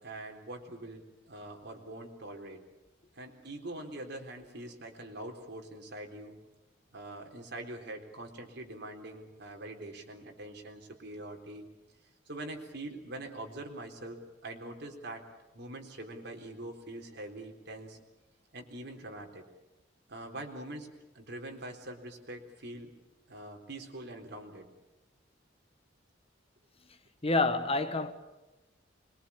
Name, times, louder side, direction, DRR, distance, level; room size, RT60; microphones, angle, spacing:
voice 1, 0.0-2.6 3.1-6.4 6.9-11.7 12.3-15.2 15.5-18.0 18.5-19.4 20.1-22.9 23.3-24.7, right 1 dB, 60° right, 3.9 m, -44 dB
voice 2, 27.2-28.1, left 3 dB, 30° left, 1.4 m, -27 dB
25.0 x 22.5 x 8.5 m
head